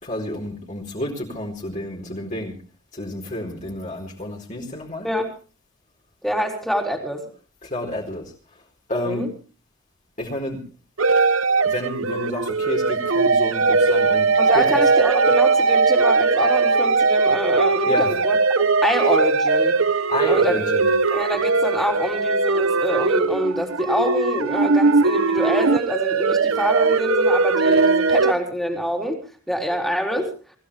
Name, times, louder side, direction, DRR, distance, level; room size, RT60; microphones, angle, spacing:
voice 1, 0.0-2.6 2.9-5.1 7.6-8.6 8.9-9.3 10.2-10.6 11.6-14.8 17.9-18.2 20.1-20.9, left 1 dB, 35° left, -1 dB, 4.3 m, -30 dB
voice 2, 6.2-7.3 9.0-9.3 14.4-19.7 20.3-20.7 21.1-29.2 29.5-30.3, equal, ahead, 2 dB, 3.8 m, -26 dB
sound 1, 11.0-28.3, right 4 dB, 75° right, 1.0 m, -19 dB
25.5 x 16.0 x 3.4 m, 0.37 s
head